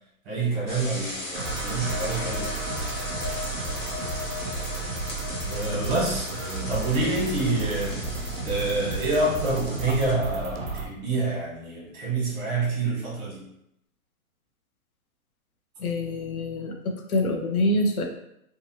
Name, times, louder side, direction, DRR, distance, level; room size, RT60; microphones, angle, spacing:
voice 1, 0.2-2.5 5.4-8.0 8.4-13.4, right 2 dB, 30° right, -5 dB, 1.2 m, -27 dB
sound 1, 0.7-10.1, left 1 dB, 55° left, 1.1 m, -38 dB
sound 2, 1.3-10.9, right 3 dB, 45° right, 0.4 m, -33 dB
sound 3, 1.5-9.0, left 7 dB, 25° left, 0.7 m, -42 dB
voice 2, 15.8-18.0, left 1 dB, 75° left, 3 dB, 0.7 m, -26 dB
2.7 x 2.4 x 2.8 m, 0.76 s
hypercardioid pair, 150°, 43 cm